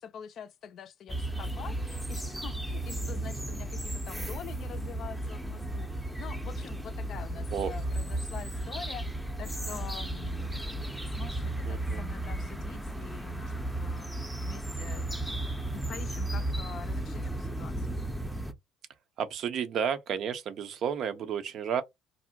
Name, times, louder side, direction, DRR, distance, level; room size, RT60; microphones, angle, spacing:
voice 1, 0.0-5.9 6.2-10.7 11.2-15.3 15.7-18.0, left 8 dB, 50° left, 0.4 m, -45 dB
sound 1, 1.1-18.5, right 1 dB, 5° right, 0.6 m, -34 dB
voice 2, 11.6-12.0 19.2-21.8, right 7 dB, 55° right, 0.5 m, -32 dB
2.6 x 2.0 x 2.8 m
hypercardioid pair, 60°, 0 cm